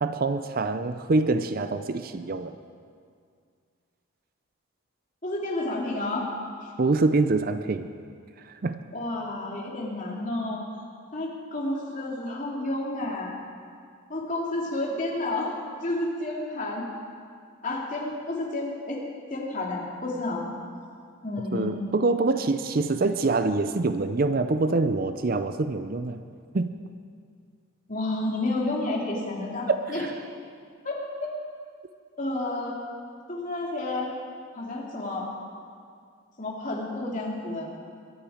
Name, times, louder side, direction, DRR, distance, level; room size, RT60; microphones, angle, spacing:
voice 1, 0.0-2.6 6.8-7.9 8.5-8.8 21.5-26.2 26.5-26.7 29.7-30.1, right 3 dB, 45° right, 10 dB, 0.5 m, -25 dB
voice 2, 5.2-6.3 8.9-10.6 11.1-13.3 14.1-15.5 15.8-16.9 17.6-19.0 19.3-20.5 21.2-21.7 27.9-30.0 30.8-31.0 32.2-32.8 33.3-34.1 34.5-35.3 36.4-37.7, left 2 dB, 35° left, -3 dB, 2.7 m, -30 dB
22.5 x 11.0 x 5.0 m, 2.2 s
head